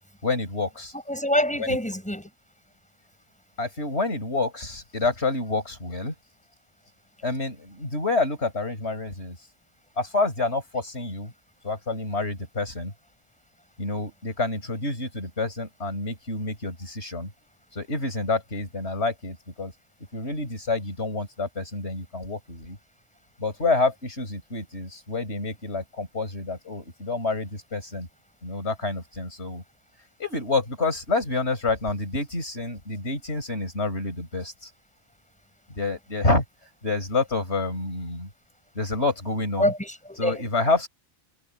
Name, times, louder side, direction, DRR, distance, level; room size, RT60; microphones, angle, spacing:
voice 1, 0.2-0.9 1.6-1.8 3.6-6.1 7.2-9.4 10.0-11.3 11.6-12.9 13.8-17.3 17.7-19.7 20.1-22.8 23.4-28.1 28.4-29.6 30.2-34.7 35.8-36.4 36.8-38.3 38.8-39.7 40.2-40.9, left 3 dB, 75° left, 5.3 m, -28 dB
voice 2, 1.1-2.3 39.6-40.4, left 1 dB, 5° left, 7.8 m, -25 dB
omnidirectional pair, 1.1 m